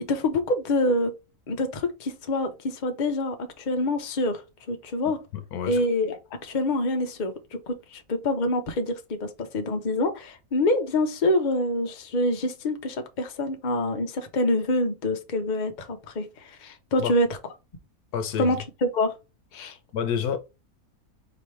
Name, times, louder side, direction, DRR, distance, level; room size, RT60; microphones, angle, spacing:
voice 1, 0.1-1.1 1.5-4.4 4.7-5.2 5.7-7.3 7.7-17.3 18.4-19.2 19.5-19.8, left 1 dB, 40° left, 0.8 m, -26 dB
voice 2, 5.3-5.8 17.0-17.1 18.1-18.5 19.9-20.4, left 8 dB, 80° left, 1.2 m, -28 dB
5.1 x 3.0 x 3.2 m
omnidirectional pair, 1.6 m